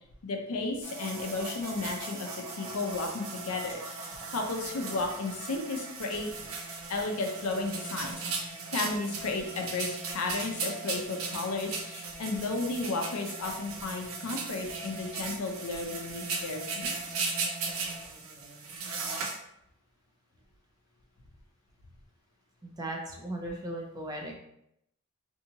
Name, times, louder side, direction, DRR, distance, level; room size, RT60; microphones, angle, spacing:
voice 1, 0.2-6.3 6.9-17.0, left 3 dB, 80° left, 2 dB, 0.5 m, -34 dB
sound 1, 0.8-19.4, right 4 dB, 70° right, 0.5 m, -37 dB
voice 2, 22.6-24.3, right 1 dB, 20° right, 1 dB, 0.4 m, -37 dB
2.7 x 2.6 x 2.7 m, 0.78 s
head